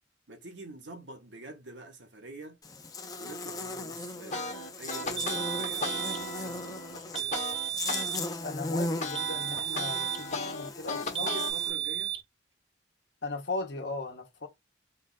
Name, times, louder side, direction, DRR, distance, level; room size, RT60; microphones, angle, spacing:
voice 1, 0.3-2.6 3.2-7.6 10.8-12.1, right 2 dB, 80° right, 1.2 m, -46 dB
Buzz, 2.6-11.7, left 2 dB, 20° left, 0.6 m, -38 dB
sound 1, 4.3-8.1 8.4-11.5, left 3 dB, 40° left, 1.2 m, -36 dB
sound 2, 5.2-6.3 7.2-8.3 9.2-10.3 11.2-12.2, right 12 dB, 30° right, 0.4 m, -33 dB
voice 2, 8.4-11.3 13.2-14.5, left 3 dB, 65° left, 1.2 m, -37 dB
3.9 x 2.5 x 4.0 m
head